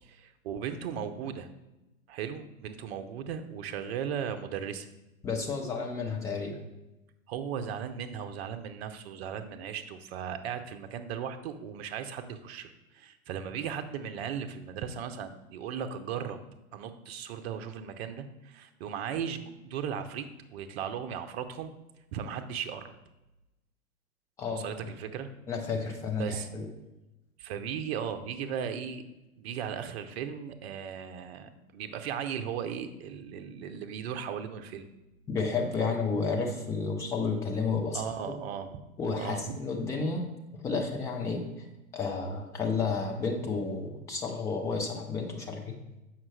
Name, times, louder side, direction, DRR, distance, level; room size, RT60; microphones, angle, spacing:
voice 1, 0.0-1.5 2.1-4.9 7.3-16.4 16.7-21.7 22.1-22.9 24.5-25.3 26.2-26.5 27.4-29.0 29.4-34.9 37.9-38.8 39.2-39.6, right 8 dB, 45° right, 8 dB, 0.7 m, -37 dB
voice 2, 5.2-6.6 24.4-24.7 25.5-26.7 35.3-38.3 39.0-40.3 40.6-41.5 41.9-45.8, left 4 dB, 10° left, 2 dB, 0.4 m, -31 dB
7.2 x 5.7 x 3.3 m, 0.98 s
hypercardioid pair, 110°, 42 cm